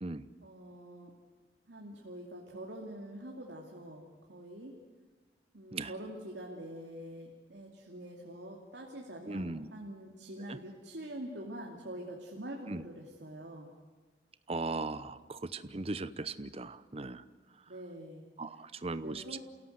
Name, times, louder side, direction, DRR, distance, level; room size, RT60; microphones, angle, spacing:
voice 1, 0.4-1.1 1.7-4.7 5.5-13.7 17.7-18.2 18.5-18.7 19.0-19.4, right 1 dB, 80° right, -1 dB, 2.7 m, -45 dB
voice 2, 9.3-9.7 12.7-12.8 14.5-17.2 18.4-19.4, right 3 dB, 35° right, 13 dB, 0.8 m, -38 dB
28.5 x 17.0 x 8.1 m, 1.4 s
head